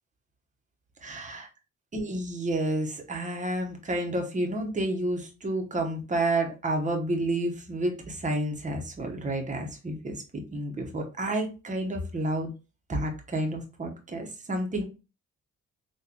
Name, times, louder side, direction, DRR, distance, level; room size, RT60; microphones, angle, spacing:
voice 1, 1.0-1.5 1.9-12.5 12.9-14.8, right 1 dB, 25° right, 2 dB, 1.0 m, -30 dB
3.9 x 2.6 x 2.9 m, 0.31 s
cardioid pair, 90°, 30 cm